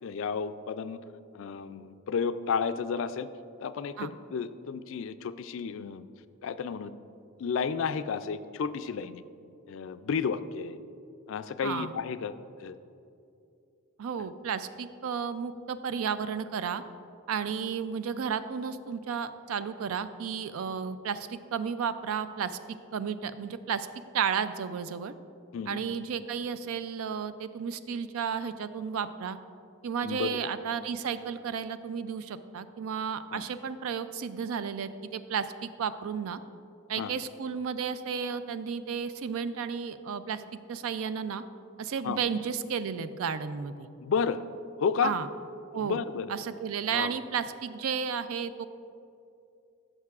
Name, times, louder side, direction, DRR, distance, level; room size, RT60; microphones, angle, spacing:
voice 1, 0.0-1.0 1.3-3.3 3.6-6.0 6.4-6.9 7.4-9.2 9.7-10.8 11.3-12.3 12.6-12.8 14.2-14.3 25.5-25.8 30.0-30.3 33.3-33.5 37.0-37.1 42.0-42.2 44.0-44.4 44.8-45.1 45.8-46.3 46.9-47.1, left 6 dB, 65° left, 12 dB, 0.3 m, -32 dB
voice 2, 14.0-16.8 17.3-22.6 22.9-23.9 24.1-25.1 25.7-29.4 29.8-36.4 36.9-40.4 40.7-41.4 41.8-43.9 45.0-45.3 45.7-46.0 46.3-48.7, right 6 dB, 80° right, 12 dB, 0.4 m, -33 dB
14.0 x 6.6 x 2.4 m, 2.6 s
head